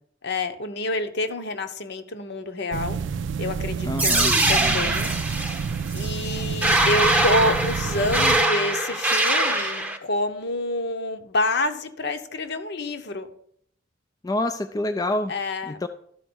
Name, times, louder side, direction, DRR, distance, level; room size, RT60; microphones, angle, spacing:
voice 1, 0.2-3.0 3.4-5.1 5.9-13.3 15.3-15.8, left 2 dB, 60° left, 8 dB, 1.0 m, -28 dB
sound 1, 2.7-8.5, right 6 dB, 65° right, 0.4 m, -29 dB
voice 2, 3.9-4.4 14.2-15.3 15.7-15.9, left 1 dB, 20° left, 8 dB, 0.4 m, -27 dB
sound 2, 4.0-10.0, right 1 dB, 10° right, 0.8 m, -22 dB
12.5 x 4.5 x 6.2 m, 0.66 s
head